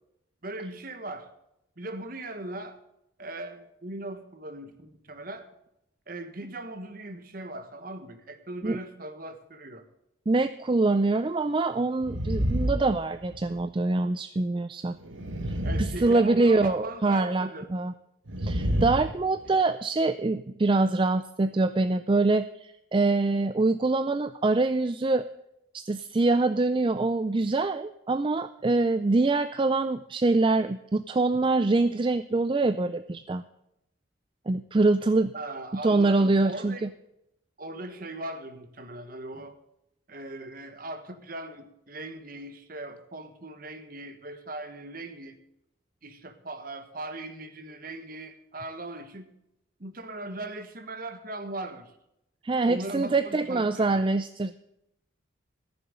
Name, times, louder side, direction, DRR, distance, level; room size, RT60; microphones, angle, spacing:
voice 1, 0.4-1.3 1.8-2.8 3.2-5.5 6.1-9.8 15.6-17.7 35.3-36.9 37.6-39.6 40.1-45.4 46.0-49.3 49.8-51.9 52.6-54.1, right 2 dB, 45° right, 9 dB, 1.4 m, -39 dB
voice 2, 10.3-15.0 15.5-17.9 18.4-25.3 25.7-33.4 34.5-35.3 35.8-36.9 52.4-54.6, right 3 dB, 25° right, 11 dB, 0.4 m, -24 dB
sound 1, 12.0-13.6 15.0-16.7 18.3-19.5, equal, 80° right, 1.4 m, -29 dB
14.5 x 7.1 x 8.7 m, 0.82 s
head